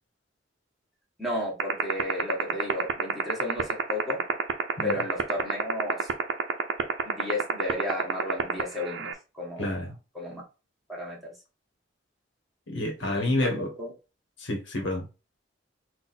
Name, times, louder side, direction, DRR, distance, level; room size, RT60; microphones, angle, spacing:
voice 1, 1.2-4.2 4.8-6.1 7.0-10.4 10.9-11.3 13.0-13.9, left 1 dB, ahead, 1.3 m, -33 dB
sound 1, 1.6-9.1, right 7 dB, 85° right, 0.6 m, -24 dB
voice 2, 9.6-9.9 12.7-13.7 14.4-15.1, left 1 dB, 80° left, 1.2 m, -28 dB
4.1 x 2.5 x 4.2 m
head